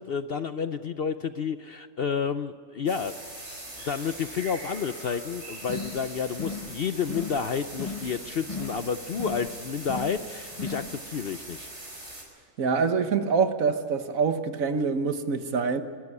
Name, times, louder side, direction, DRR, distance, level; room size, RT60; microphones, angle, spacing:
voice 1, 0.0-3.2 3.8-11.7, left 6 dB, 55° left, 10 dB, 0.7 m, -30 dB
sound 1, 2.9-12.2, right 1 dB, 50° right, 5.2 m, -42 dB
sound 2, 5.6-6.1 6.3-6.7 7.0-7.5 7.7-8.2 8.4-8.9 9.1-9.5 9.8-10.3 10.5-10.9, left 4 dB, 25° left, 1.3 m, -36 dB
voice 2, 12.6-15.8, right 5 dB, 70° right, 9 dB, 1.6 m, -25 dB
25.0 x 13.5 x 9.6 m, 2.4 s
omnidirectional pair, 1.5 m